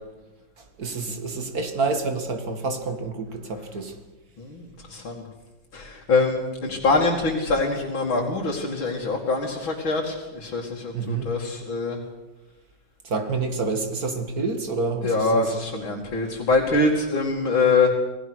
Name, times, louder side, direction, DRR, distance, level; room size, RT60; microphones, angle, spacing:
voice 1, 0.8-3.9 10.9-11.3 13.0-15.5, right 3 dB, 50° right, 7 dB, 2.5 m, -28 dB
voice 2, 4.4-5.2 5.7-12.0 15.0-17.9, left 3 dB, 85° left, -2 dB, 3.3 m, -24 dB
27.5 x 18.5 x 6.4 m, 1.1 s
omnidirectional pair, 2.1 m